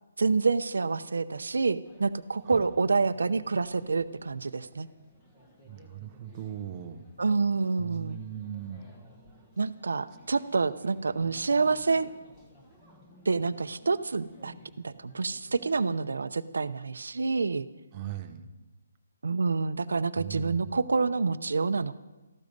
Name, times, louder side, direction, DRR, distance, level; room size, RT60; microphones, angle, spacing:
voice 1, 0.2-4.9 7.2-8.2 9.6-12.1 13.3-14.5 14.8-17.7 19.2-21.9, right 4 dB, 80° right, 11 dB, 0.7 m, -27 dB
sound 1, 1.8-15.8, equal, 10° left, 1.4 m, -56 dB
voice 2, 5.6-7.0 7.8-8.8 17.9-18.5 20.2-20.7, right 10 dB, 15° right, 7 dB, 0.7 m, -39 dB
17.5 x 14.0 x 5.3 m, 1.1 s
hypercardioid pair, 180°, 0 cm